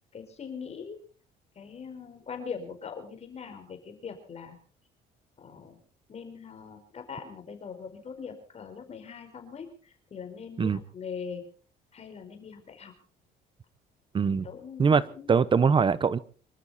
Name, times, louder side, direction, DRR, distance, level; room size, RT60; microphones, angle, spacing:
voice 1, 0.1-1.0 1.5-4.6 5.4-5.8 6.1-11.5 11.9-12.9 14.4-15.4, left 6 dB, 40° left, 6 dB, 4.7 m, -41 dB
voice 2, 14.1-14.5 14.8-16.2, right 5 dB, 30° right, 18 dB, 0.9 m, -23 dB
25.5 x 13.0 x 4.2 m, 0.42 s
cardioid pair, 110°, 17 cm